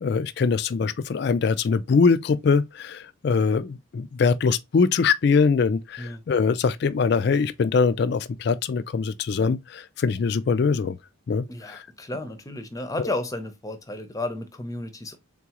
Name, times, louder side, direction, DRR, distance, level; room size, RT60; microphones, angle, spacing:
voice 1, 0.0-11.0 11.3-11.8, left 5 dB, 50° left, 0.3 m, -23 dB
voice 2, 11.5-15.2, left 2 dB, 15° left, 0.6 m, -33 dB
3.8 x 3.6 x 2.9 m
head